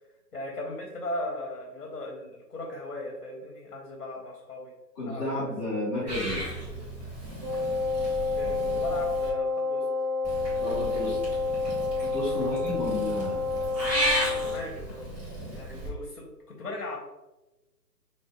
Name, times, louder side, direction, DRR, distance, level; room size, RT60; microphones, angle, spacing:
voice 1, 0.3-4.7 5.0-5.5 6.7-6.8 8.3-9.8 12.3-12.5 14.3-15.1 15.5-17.0, left 1 dB, 55° left, 0 dB, 1.0 m, -38 dB
voice 2, 4.9-6.4 10.6-11.2 12.0-13.4 15.7-15.8, left 1 dB, 10° left, -13 dB, 0.8 m, -32 dB
Purr / Meow, 6.1-9.3 10.2-15.9, equal, 15° right, 1.2 m, -34 dB
Wind instrument woodwind instrument, 7.4-14.7, left 3 dB, 80° right, 1.0 m, -29 dB
6.0 x 2.8 x 2.3 m, 1.0 s
figure-of-eight pair, 140°, 50 cm